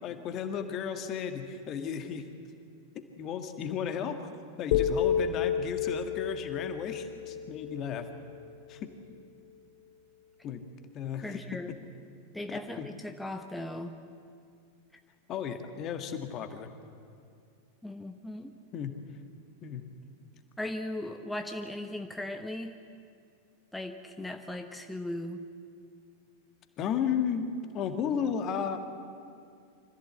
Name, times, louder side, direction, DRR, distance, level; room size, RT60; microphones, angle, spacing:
voice 1, 0.0-2.3 3.2-4.2 4.6-8.0 8.7-8.9 10.4-10.6 10.9-11.6 12.5-12.9 15.3-16.7 18.7-18.9 19.6-19.8 26.8-27.5 27.7-28.8, left 8 dB, 35° left, 7 dB, 1.8 m, -34 dB
sound 1, 4.7-8.8, left 8 dB, 50° left, 1.3 m, -31 dB
voice 2, 11.2-11.8 12.3-14.0 17.8-18.5 20.6-22.8 23.7-25.4, left 1 dB, 5° left, 5 dB, 1.1 m, -38 dB
25.0 x 15.0 x 8.2 m, 2.3 s
figure-of-eight pair, 90°, 0 cm